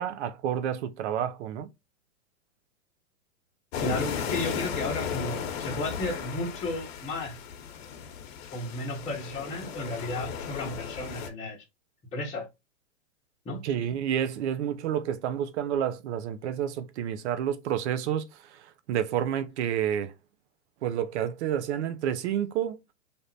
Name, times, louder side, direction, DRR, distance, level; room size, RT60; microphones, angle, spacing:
voice 1, 0.0-1.7 13.6-20.1 20.8-22.8, right 9 dB, 60° right, 0.8 m, -29 dB
sound 1, 3.7-11.3, left 7 dB, 50° left, 1.0 m, -35 dB
voice 2, 3.8-7.4 8.5-11.6 12.1-12.5 13.4-13.6, left 2 dB, 15° left, 1.1 m, -33 dB
3.5 x 2.8 x 4.0 m
hypercardioid pair, 140°, 39 cm